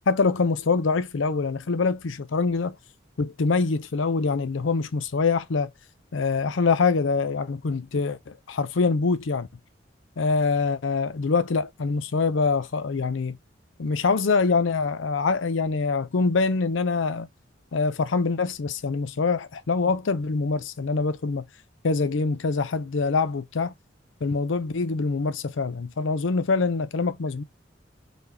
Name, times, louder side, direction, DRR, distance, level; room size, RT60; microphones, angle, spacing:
voice 1, 0.1-2.8 3.2-5.7 6.1-9.5 10.2-13.4 13.8-17.3 17.7-21.4 21.8-23.7 24.2-27.4, left 4 dB, 85° left, 0.6 m, -24 dB
4.0 x 3.4 x 2.8 m
head